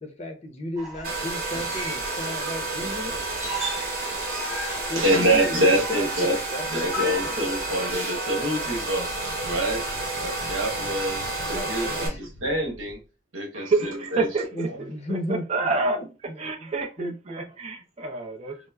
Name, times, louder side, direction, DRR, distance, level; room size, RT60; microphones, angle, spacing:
voice 1, 0.0-3.2 4.9-5.6 5.9-7.4 11.2-12.2 14.6-15.4 16.6-16.7 17.0-17.1, left 1 dB, 35° left, 0.6 m, -34 dB
sound 1, 0.8-7.7, equal, 5° right, 1.0 m, -37 dB
Domestic sounds home sounds, 1.0-12.1, right 2 dB, 50° right, 0.9 m, -30 dB
voice 2, 4.9-6.4 6.7-9.1 9.4-9.8 10.2-13.0 13.3-14.3, right 1 dB, 80° right, 1.1 m, -26 dB
Wind, 8.2-13.1, left 1 dB, 90° left, 0.7 m, -44 dB
voice 3, 13.5-16.0 16.4-18.7, right 3 dB, 35° right, 0.5 m, -28 dB
4.3 x 2.0 x 2.2 m
head